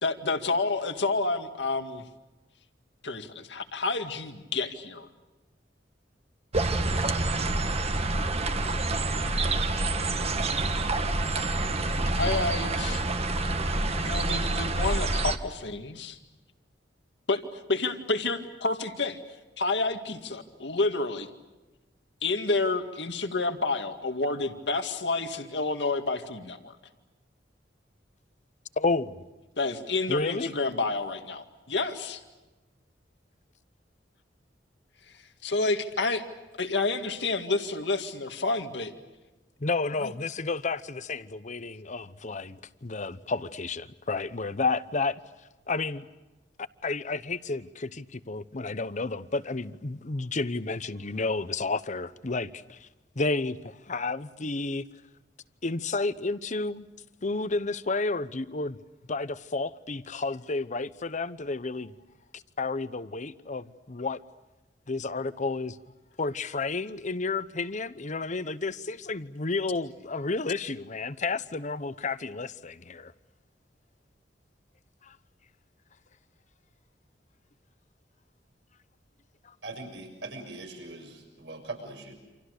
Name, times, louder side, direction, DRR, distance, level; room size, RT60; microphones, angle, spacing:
voice 1, 0.0-2.1 3.0-5.1 12.2-13.0 13.9-16.2 17.3-19.2 19.6-21.3 22.2-26.7 29.6-32.2 35.4-36.2 36.6-38.9 40.0-40.1, left 3 dB, 70° left, 2.1 m, -29 dB
sound 1, 6.5-15.4, right 2 dB, 35° right, 1.5 m, -27 dB
voice 2, 28.8-29.2 30.1-30.5 39.6-45.2 45.7-46.1 46.8-52.9 53.2-54.8 55.6-56.8 57.2-58.8 59.1-61.9 62.3-64.2 64.9-65.8 66.2-73.1 75.0-75.2, left 3 dB, 45° left, 0.9 m, -31 dB
voice 3, 79.6-82.1, right 2 dB, 75° right, 6.7 m, -41 dB
28.5 x 27.0 x 6.6 m
head